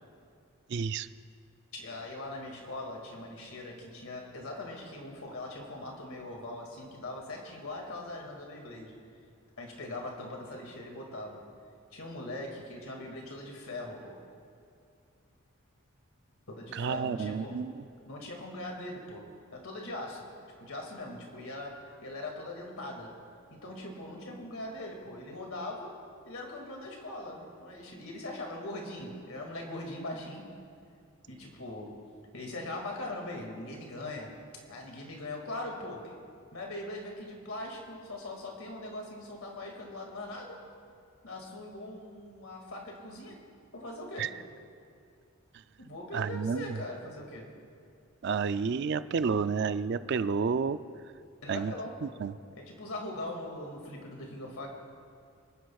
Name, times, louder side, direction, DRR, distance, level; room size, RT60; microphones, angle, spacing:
voice 1, 0.7-1.1 16.7-17.8 44.2-44.3 46.1-46.8 48.2-50.8 51.5-51.7 52.0-52.3, right 5 dB, 50° right, 13 dB, 0.3 m, -30 dB
voice 2, 1.7-9.0 9.6-11.4 11.9-14.2 16.5-17.7 18.1-19.2 19.5-20.3 20.6-23.1 23.5-26.0 26.3-30.5 31.3-31.9 32.3-34.4 34.7-36.2 36.5-40.6 41.2-43.4 43.7-44.3 45.8-47.5 51.4-52.2 52.6-54.7, left 1 dB, 80° left, 0 dB, 2.2 m, -41 dB
26.0 x 10.0 x 2.4 m, 2.4 s
head